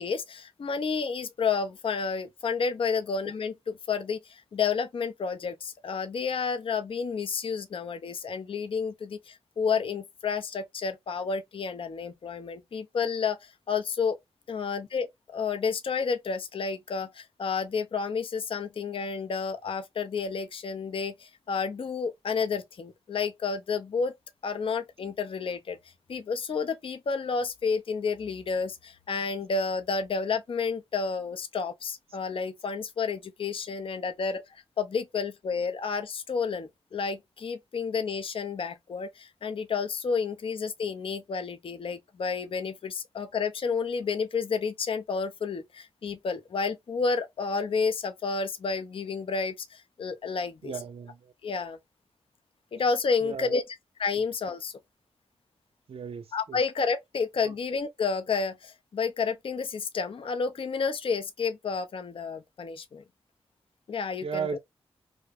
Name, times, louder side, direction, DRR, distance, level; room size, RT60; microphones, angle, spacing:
voice 1, 0.0-14.2 14.5-24.1 24.4-25.8 26.1-50.7 51.4-51.8 52.7-54.7 56.3-63.0 63.9-64.6, left 5 dB, 55° left, 0.5 m, -30 dB
voice 2, 50.6-51.3 53.2-53.6 55.9-56.6 64.2-64.6, right 6 dB, 65° right, 0.4 m, -35 dB
2.5 x 2.2 x 3.2 m
cardioid pair, 45°, 11 cm